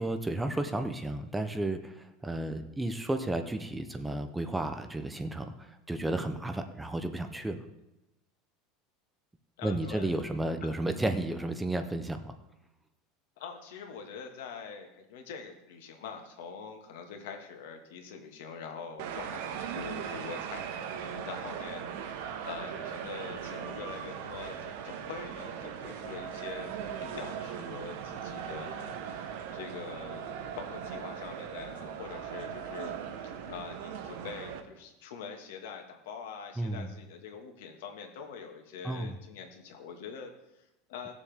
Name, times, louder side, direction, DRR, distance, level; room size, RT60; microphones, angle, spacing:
voice 1, 0.0-7.7 9.6-12.3 36.6-36.9 38.8-39.1, right 1 dB, 5° right, 8 dB, 0.4 m, -33 dB
voice 2, 9.6-10.1 10.6-10.7 13.4-41.2, left 6 dB, 90° left, 4 dB, 1.6 m, -44 dB
sound 1, 19.0-34.6, right 8 dB, 65° right, 1.0 m, -39 dB
17.5 x 7.0 x 3.5 m, 0.92 s
supercardioid pair, 180°, 0 cm